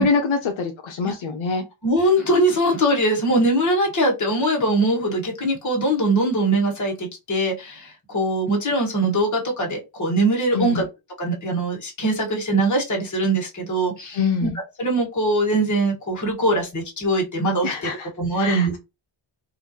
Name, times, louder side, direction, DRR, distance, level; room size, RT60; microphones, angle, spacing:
voice 1, 0.0-1.6 10.5-10.8 14.1-14.6 17.6-18.1 18.3-18.8, left 5 dB, 75° left, 0.8 m, -24 dB
voice 2, 1.8-10.8 11.2-14.5 14.8-17.9 18.2-18.8, right 1 dB, 35° left, 1.5 m, -22 dB
4.0 x 2.6 x 2.9 m
wide cardioid pair, 120°, 48 cm